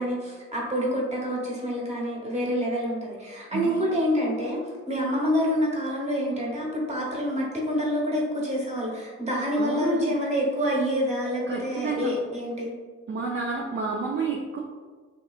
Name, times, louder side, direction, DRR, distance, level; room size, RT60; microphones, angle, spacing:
voice 1, 0.0-12.7, equal, 20° right, -3 dB, 1.0 m, -27 dB
voice 2, 3.5-3.8 9.5-10.2 11.5-12.1 13.1-14.6, right 3 dB, 40° right, -1 dB, 0.5 m, -29 dB
3.5 x 2.6 x 2.4 m, 1.5 s
cardioid pair, 90°, 30 cm